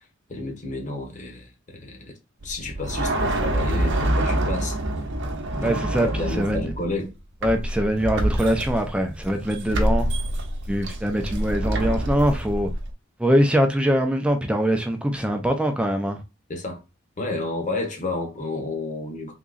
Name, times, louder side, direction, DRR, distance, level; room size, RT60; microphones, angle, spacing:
voice 1, 0.3-2.1 2.4-4.8 5.6-7.1 16.5-16.8 17.2-19.3, left 2 dB, 35° left, 1.0 m, -31 dB
sound 1, 2.4-7.0 7.4-12.9, right 1 dB, 55° right, 0.7 m, -26 dB
voice 2, 5.6-6.7 7.4-10.1 10.7-12.7 13.2-16.2, equal, 5° right, 0.4 m, -23 dB
3.6 x 2.9 x 2.4 m
head